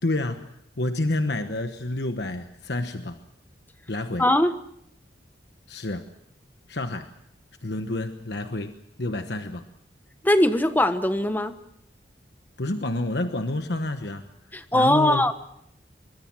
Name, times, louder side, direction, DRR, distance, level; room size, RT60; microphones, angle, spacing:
voice 1, 0.0-3.2 3.9-4.2 5.7-6.1 6.7-7.1 7.6-8.7 9.0-9.6 12.6-14.3 14.7-15.2, left 2 dB, 65° left, 7 dB, 1.2 m, -29 dB
voice 2, 4.2-4.5 10.2-11.6 14.5-15.3, left 1 dB, 10° left, 10 dB, 1.1 m, -20 dB
24.0 x 22.0 x 6.2 m, 0.77 s
head